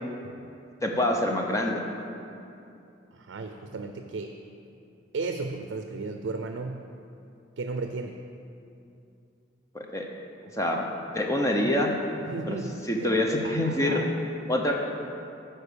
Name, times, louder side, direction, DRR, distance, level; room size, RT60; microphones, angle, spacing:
voice 1, 0.8-1.8 9.7-10.1 10.6-10.9 11.1-11.9 12.5-12.6 12.9-14.0 14.5-14.7, left 1 dB, 15° left, 1 dB, 0.7 m, -25 dB
voice 2, 3.1-4.4 5.1-6.8 7.6-8.2 12.3-13.2 13.4-14.1, right 3 dB, 80° right, 5 dB, 0.5 m, -35 dB
9.5 x 4.5 x 6.8 m, 2.6 s
head